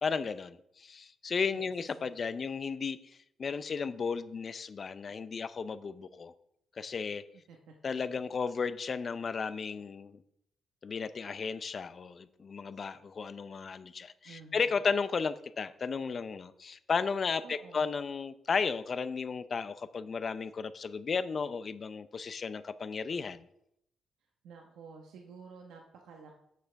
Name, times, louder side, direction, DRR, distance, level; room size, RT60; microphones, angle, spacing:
voice 1, 0.0-6.3 6.8-7.3 7.8-10.2 10.8-23.4, left 5 dB, 40° left, 13 dB, 0.5 m, -34 dB
voice 2, 2.0-2.5 7.5-7.7 8.3-8.5 14.2-14.8 17.4-17.8 24.4-26.3, right 5 dB, 80° right, 1 dB, 1.1 m, -52 dB
8.3 x 6.7 x 4.6 m, 0.78 s
cardioid pair, 90°, 0 cm